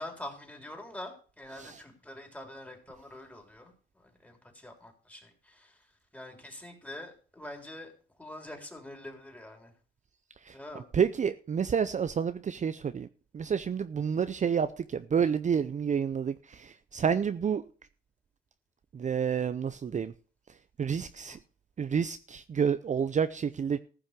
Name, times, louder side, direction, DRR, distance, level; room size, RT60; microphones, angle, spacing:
voice 1, 0.0-3.7 4.2-5.7 6.1-7.9 8.2-9.7 10.5-10.9 21.3-21.4, left 1 dB, 5° left, 3.8 m, -45 dB
voice 2, 10.9-13.1 13.3-17.6 18.9-20.1 20.8-21.4 21.8-23.8, right 7 dB, 40° right, 0.7 m, -29 dB
14.5 x 6.3 x 6.7 m
cardioid pair, 90°, 20 cm